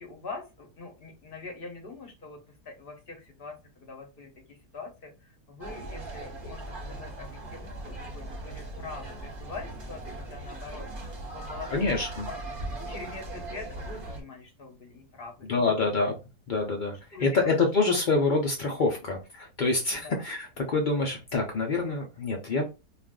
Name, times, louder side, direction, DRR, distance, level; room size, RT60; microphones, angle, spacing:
voice 1, 0.0-2.4 2.6-10.9 11.3-12.0 12.2-12.4 12.8-15.9 17.1-17.5 20.0-20.2, left 3 dB, 45° left, 2 dB, 0.8 m, -43 dB
sound 1, 5.6-14.2, right 2 dB, 40° right, 0.9 m, -39 dB
voice 2, 11.7-12.3 15.5-16.1 16.5-22.6, left 3 dB, 80° left, 1 dB, 0.4 m, -26 dB
2.4 x 2.4 x 3.5 m, 0.28 s
omnidirectional pair, 1.7 m